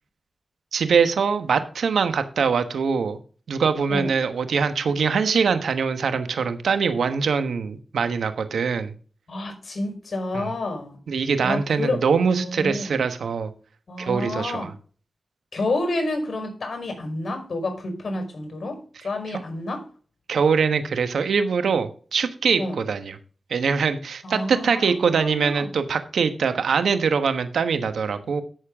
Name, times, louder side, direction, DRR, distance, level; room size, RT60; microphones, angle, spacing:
voice 1, 0.7-3.2 3.5-8.9 10.3-10.5 11.1-13.5 14.0-14.7 19.3-19.4 20.3-23.2 23.5-28.4, right 5 dB, 85° right, 1.2 m, -23 dB
voice 2, 9.3-11.0 11.4-12.0 12.3-13.0 13.9-14.7 15.5-19.8 22.6-22.8 24.2-25.7, left 2 dB, 60° left, 5.1 m, -29 dB
14.0 x 6.7 x 3.6 m
cardioid pair, 50°, 0 cm